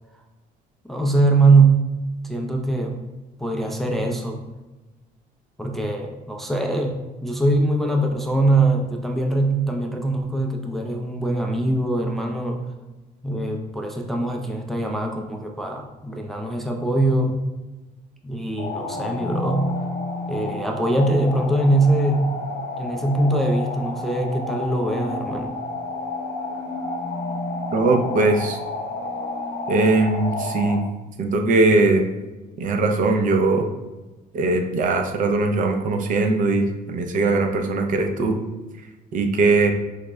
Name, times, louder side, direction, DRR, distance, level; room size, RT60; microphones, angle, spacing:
voice 1, 0.9-1.8 2.2-3.0 3.4-4.4 5.6-12.6 13.2-17.5 18.2-19.7 20.3-22.3 22.8-25.5, right 2 dB, ahead, 1 dB, 0.4 m, -22 dB
sound 1, 18.6-30.8, left 2 dB, 75° left, 0.7 m, -30 dB
voice 2, 27.7-28.6 29.7-30.8 31.2-32.1 32.6-33.7 34.3-38.4 39.1-39.7, right 3 dB, 50° right, 4 dB, 0.5 m, -20 dB
4.9 x 2.1 x 3.3 m, 1.1 s
cardioid pair, 110°, 17 cm